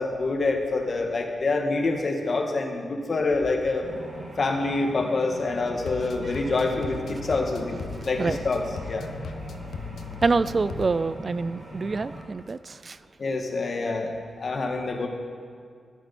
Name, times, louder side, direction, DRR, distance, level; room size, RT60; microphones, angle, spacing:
voice 1, 0.0-3.9 4.4-8.6 8.9-9.1 13.2-15.1, left 3 dB, 45° left, 2 dB, 1.9 m, -26 dB
sound 1, 3.8-12.2, right 1 dB, 55° right, 4.3 m, -41 dB
sound 2, 5.8-10.9, left 6 dB, 85° left, 0.8 m, -38 dB
voice 2, 10.2-13.0, right 4 dB, 35° right, 16 dB, 0.4 m, -26 dB
15.5 x 14.0 x 4.3 m, 2.1 s
wide cardioid pair, 140°, 0 cm